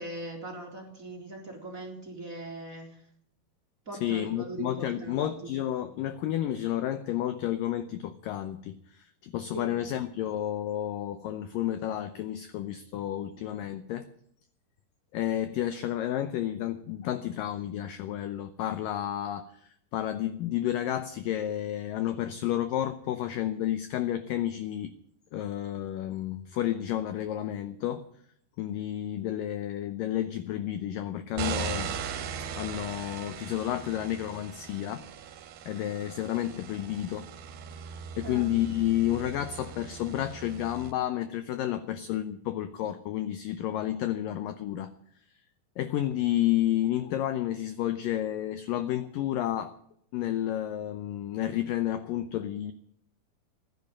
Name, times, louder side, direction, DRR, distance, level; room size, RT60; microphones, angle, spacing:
voice 1, 0.0-3.0 3.8-5.5 9.5-9.9 38.2-38.5, right 2 dB, 20° right, 1 dB, 3.1 m, -40 dB
voice 2, 4.0-14.1 15.1-24.9 25.3-28.0 28.6-32.0 32.6-35.0 35.7-37.3 38.2-44.9 45.8-49.7 50.1-52.7, left 12 dB, 85° left, 11 dB, 1.9 m, -31 dB
sound 1, 31.4-40.9, right 7 dB, 70° right, 3.2 m, -39 dB
15.0 x 11.0 x 8.6 m, 0.67 s
omnidirectional pair, 5.1 m